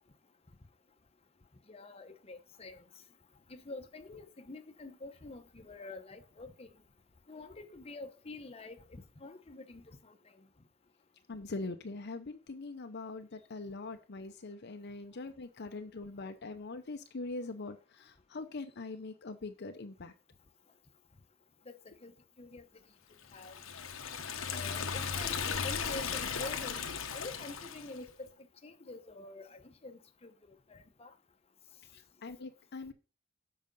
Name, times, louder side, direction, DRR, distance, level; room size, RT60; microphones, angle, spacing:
voice 1, 1.7-2.8 3.5-6.7 7.3-10.2 21.7-21.8 22.0-22.1 22.4-22.6 23.3-23.6 24.5-28.3 28.6-30.3 30.7-31.1, left 2 dB, 30° left, 0.9 m, -47 dB
voice 2, 11.3-20.1 31.9-32.9, left 3 dB, 55° left, 0.7 m, -42 dB
Liquid, 23.4-28.0, left 6 dB, 90° left, 1.0 m, -36 dB
7.6 x 5.1 x 5.2 m
head